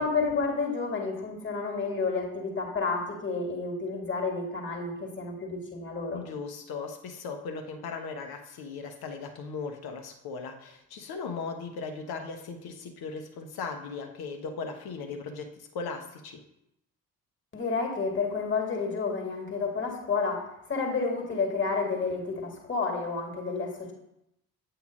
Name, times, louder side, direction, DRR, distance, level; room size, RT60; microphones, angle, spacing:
voice 1, 0.0-6.2 17.5-20.4 20.7-23.9, left 4 dB, 25° left, 2 dB, 1.9 m, -30 dB
voice 2, 6.1-16.4, left 4 dB, 50° left, 5 dB, 1.0 m, -38 dB
8.2 x 2.8 x 5.0 m, 0.81 s
figure-of-eight pair, 45°, 47 cm